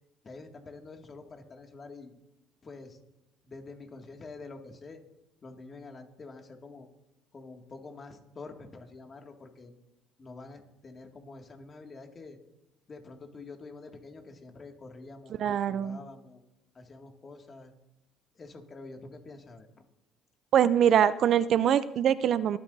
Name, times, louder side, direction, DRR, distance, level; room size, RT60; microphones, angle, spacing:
voice 1, 0.2-2.1 2.6-3.0 3.4-5.0 5.4-6.9 7.3-9.7 10.2-12.4 12.9-15.3 15.7-16.4 16.7-17.7 18.3-19.8, left 3 dB, 35° left, 3 dB, 2.3 m, -47 dB
voice 2, 15.4-16.0 20.5-22.6, right 9 dB, 60° right, 16 dB, 0.5 m, -23 dB
24.0 x 9.8 x 2.8 m, 0.90 s
supercardioid pair, 80°, 0 cm